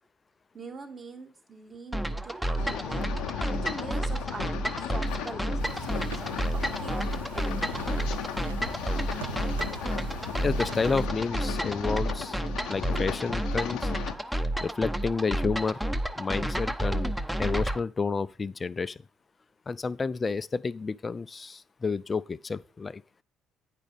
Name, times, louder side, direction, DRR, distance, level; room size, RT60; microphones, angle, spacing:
voice 1, 0.5-7.5 14.1-14.2, right 3 dB, 35° right, 1.6 m, -43 dB
sound 1, 1.9-17.8, right 1 dB, 5° right, 0.7 m, -31 dB
sound 2, 2.6-14.1, left 10 dB, 70° left, 0.7 m, -37 dB
sound 3, 5.6-11.1, right 9 dB, 85° right, 0.3 m, -43 dB
voice 2, 10.4-12.4 12.7-13.9 14.6-15.8 16.2-17.1 17.4-19.0 19.7-23.0, left 4 dB, 30° left, 0.4 m, -30 dB
9.2 x 5.1 x 5.1 m
hypercardioid pair, 50°, 0 cm